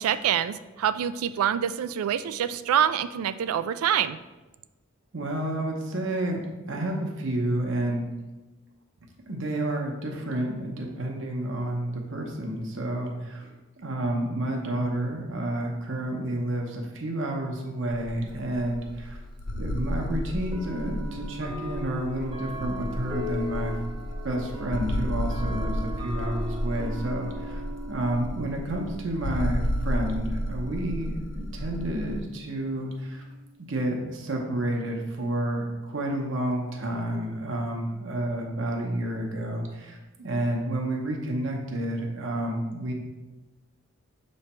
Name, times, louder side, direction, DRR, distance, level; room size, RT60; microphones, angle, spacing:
voice 1, 0.0-4.2, right 9 dB, 85° right, 12 dB, 0.3 m, -26 dB
voice 2, 5.1-8.1 9.3-19.2 19.5-23.7 24.2-27.6 27.9-33.2 33.6-42.9, right 1 dB, 60° right, 1 dB, 0.9 m, -30 dB
sound 1, 17.9-32.2, equal, 50° left, 0.5 m, -32 dB
sound 2, 18.3-18.4 19.5-19.6 20.5-33.7, left 1 dB, 20° right, 0.5 m, -40 dB
6.9 x 3.2 x 4.3 m, 1.1 s
head